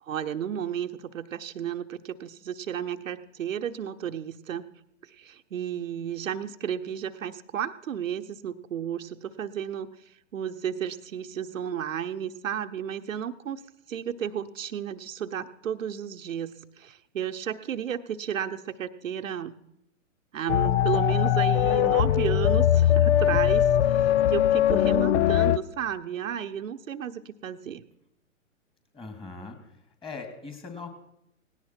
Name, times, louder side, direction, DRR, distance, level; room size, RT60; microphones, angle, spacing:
voice 1, 0.0-4.7 5.1-9.9 10.3-13.6 13.9-19.5 20.3-27.8, right 9 dB, 75° right, 7 dB, 1.0 m, -33 dB
sound 1, 20.5-25.6, left 10 dB, 55° left, 0.6 m, -21 dB
voice 2, 28.9-29.8 30.0-30.9, left 4 dB, 15° left, 6 dB, 2.5 m, -40 dB
18.0 x 17.0 x 4.5 m, 0.79 s
hypercardioid pair, 120°, 39 cm